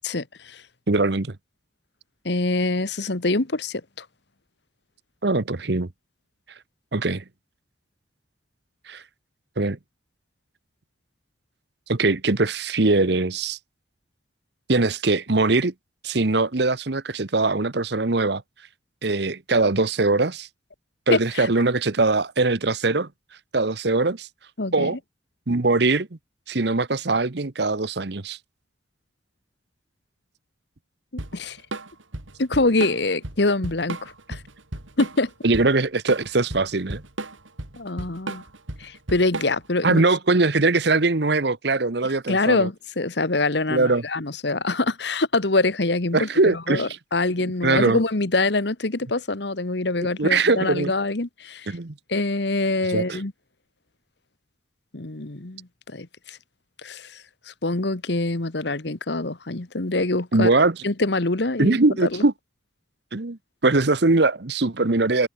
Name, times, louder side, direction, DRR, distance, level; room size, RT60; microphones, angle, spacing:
voice 1, 0.0-0.6 2.2-4.0 21.1-21.5 24.6-24.9 31.3-31.6 32.4-34.4 35.0-35.3 37.8-38.4 38.8-40.0 42.3-51.7 52.1-53.3 54.9-56.4 56.8-60.5 60.8-61.8 62.1-62.2, left 2 dB, 60° left, 1.4 m, -25 dB
voice 2, 0.9-1.3 5.2-5.9 6.9-7.2 8.9-9.0 9.6-9.8 11.9-13.6 14.7-15.7 16.0-18.4 19.0-20.5 21.1-23.1 23.5-24.3 24.7-25.0 25.5-26.1 26.5-28.4 35.4-37.0 39.8-42.7 43.7-44.0 46.1-46.9 47.4-48.0 50.2-50.9 51.7-51.9 52.9-53.2 60.3-60.8 61.6-62.3 63.1-65.3, right 3 dB, 60° right, 1.0 m, -21 dB
Drum kit / Drum, 31.2-39.8, right 2 dB, 85° right, 2.9 m, -34 dB
head